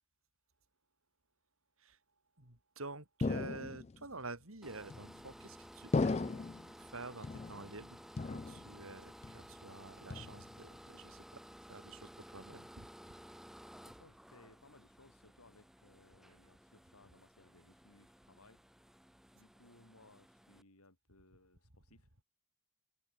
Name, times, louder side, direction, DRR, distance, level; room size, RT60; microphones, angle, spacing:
voice 1, 2.4-6.4 6.8-11.4 11.7-13.1, right 3 dB, 75° right, 4.9 m, -49 dB
sound 1, 3.2-4.1 4.9-5.4 5.9-6.7 7.2-7.8 8.2-8.9 9.2-9.7 10.1-10.7, left 3 dB, 30° left, 0.3 m, -37 dB
sound 2, 4.6-20.6, equal, ahead, 2.8 m, -56 dB
voice 2, 13.9-18.6 19.3-22.2, left 2 dB, 90° left, 4.9 m, -64 dB
open air
head